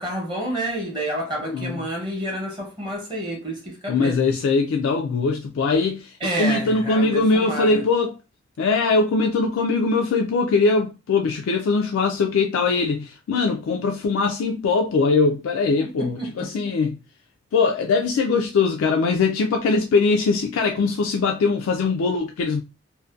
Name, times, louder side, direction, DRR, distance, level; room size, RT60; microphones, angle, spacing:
voice 1, 0.0-4.2 6.2-7.9 15.8-16.5, right 1 dB, 25° right, 0.7 m, -29 dB
voice 2, 1.4-1.8 3.9-8.1 8.6-17.0 17.5-22.6, left 4 dB, 85° left, 0.3 m, -21 dB
2.6 x 2.1 x 2.3 m
head